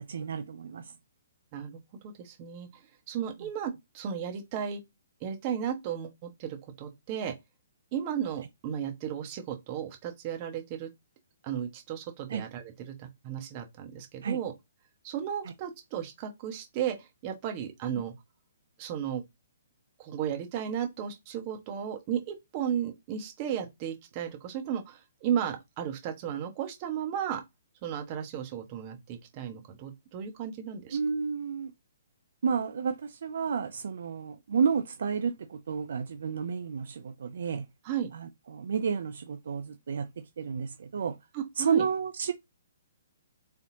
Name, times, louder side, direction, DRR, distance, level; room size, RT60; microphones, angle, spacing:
voice 1, 0.1-0.8 12.3-12.5 14.2-14.4 30.9-31.7 32.4-37.7 38.1-40.1 40.4-41.1 41.6-42.3, right 6 dB, 65° right, 0.5 m, -31 dB
voice 2, 1.5-2.7 3.1-4.8 5.2-7.3 7.9-10.9 11.4-14.5 15.0-18.1 18.8-19.2 20.0-27.4 27.8-31.0 37.8-38.1 41.3-41.9, right 9 dB, 35° right, 1.3 m, -34 dB
4.4 x 3.4 x 2.7 m
figure-of-eight pair, 130°, 0 cm